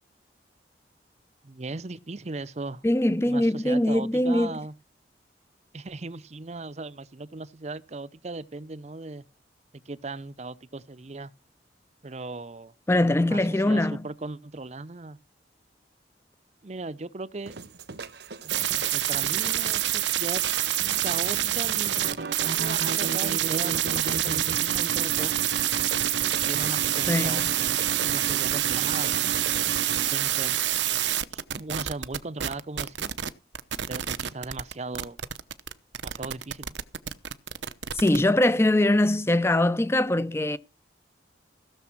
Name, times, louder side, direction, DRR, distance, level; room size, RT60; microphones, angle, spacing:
voice 1, 1.4-2.8 3.2-4.7 5.7-9.2 9.7-11.3 12.0-12.7 13.2-15.2 16.6-17.6 18.4-20.4 21.0-25.4 26.3-29.2 30.1-33.1 33.9-35.2 36.0-36.8, right 3 dB, 40° right, 0.7 m, -38 dB
voice 2, 2.8-4.5 12.9-14.0 27.1-27.4 37.9-40.6, left 1 dB, 15° left, 0.6 m, -22 dB
sound 1, 17.5-30.1, right 3 dB, 70° right, 1.1 m, -36 dB
sound 2, 18.5-33.3 33.5-38.2, right 12 dB, 85° right, 0.9 m, -27 dB
16.5 x 7.1 x 6.0 m
head